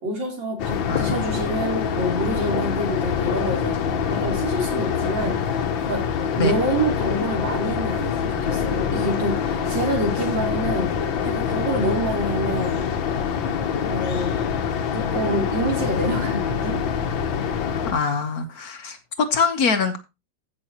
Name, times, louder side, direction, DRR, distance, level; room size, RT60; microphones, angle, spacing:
voice 1, 0.0-3.8 4.1-6.0 6.4-12.9 13.8-14.3 14.9-16.8, right 1 dB, 70° right, 4.2 m, -27 dB
sound 1, 0.6-17.9, left 7 dB, 85° left, 1.8 m, -25 dB
voice 2, 0.9-1.3 6.4-6.5 17.9-20.0, left 5 dB, 55° left, 1.4 m, -24 dB
15.5 x 6.1 x 3.0 m
omnidirectional pair, 2.1 m